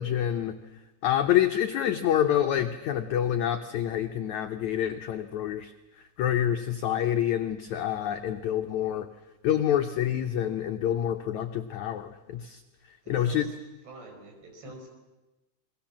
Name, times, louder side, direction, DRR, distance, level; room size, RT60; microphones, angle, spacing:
voice 1, 0.0-9.1 9.4-13.5, left 10 dB, 80° left, 6 dB, 1.6 m, -27 dB
voice 2, 13.0-13.5 13.9-14.9, right 3 dB, 80° right, 3 dB, 7.2 m, -46 dB
28.0 x 22.0 x 7.4 m, 1.1 s
omnidirectional pair, 4.6 m